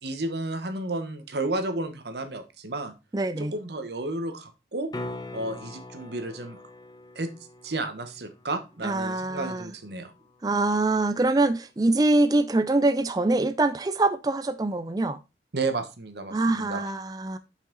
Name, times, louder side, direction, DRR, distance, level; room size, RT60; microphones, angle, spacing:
voice 1, 0.0-2.9 3.4-4.9 5.3-6.6 7.1-7.3 7.6-10.1 15.5-16.8, right 2 dB, 75° right, 1.1 m, -32 dB
voice 2, 3.1-3.5 8.8-9.7 10.4-15.2 16.3-17.4, right 2 dB, 20° right, 0.4 m, -24 dB
sound 1, 4.9-10.9 15.6-15.7, left 2 dB, 20° left, 0.7 m, -43 dB
7.3 x 5.6 x 3.9 m
head